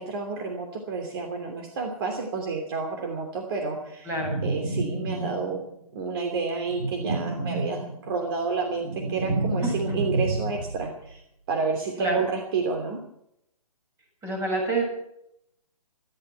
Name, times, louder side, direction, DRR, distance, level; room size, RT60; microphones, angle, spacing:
voice 1, 0.0-4.1 4.4-5.6 5.9-11.2 11.5-13.0, right 4 dB, 35° right, 3 dB, 3.0 m, -30 dB
sound 1, 4.1-5.7 6.7-8.2 8.5-10.9, right 2 dB, 75° right, 5.7 m, -30 dB
voice 2, 9.6-10.0 12.0-12.2 14.2-14.8, right 2 dB, 15° right, 1 dB, 6.8 m, -27 dB
19.0 x 14.5 x 4.7 m, 0.76 s
hypercardioid pair, 145°, 19 cm